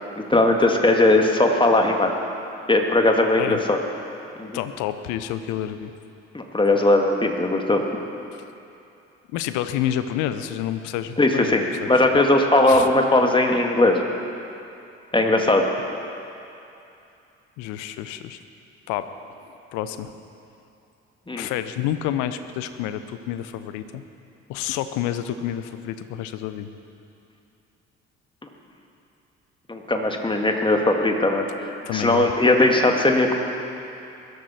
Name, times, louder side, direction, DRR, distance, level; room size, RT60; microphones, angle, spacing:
voice 1, 0.2-2.1 2.7-3.8 4.4-4.6 6.3-7.8 11.2-14.0 15.1-15.6 21.3-21.5 29.7-33.3, left 2 dB, 15° left, 3 dB, 2.1 m, -19 dB
voice 2, 4.5-5.9 8.3-8.4 9.3-11.6 11.9-12.0 12.7-12.9 15.2-15.3 17.6-18.4 18.9-19.1 19.5-20.1 21.4-24.0 24.5-26.7 31.8-32.3, left 11 dB, 65° left, 11 dB, 0.9 m, -29 dB
21.0 x 13.0 x 4.4 m, 2.7 s
figure-of-eight pair, 50°, 32 cm